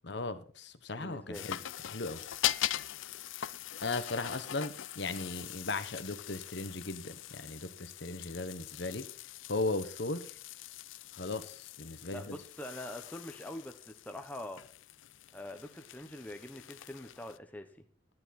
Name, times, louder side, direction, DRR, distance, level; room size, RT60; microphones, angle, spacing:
voice 1, 0.0-1.6 1.9-2.2 3.8-9.0 9.5-10.3 11.1-12.4, left 3 dB, 55° left, 1.0 m, -37 dB
voice 2, 1.0-1.5 12.1-14.6 15.3-17.8, left 1 dB, 10° left, 1.0 m, -44 dB
sound 1, 1.3-17.4, left 13 dB, 75° left, 0.5 m, -41 dB
12.0 x 11.0 x 4.2 m
head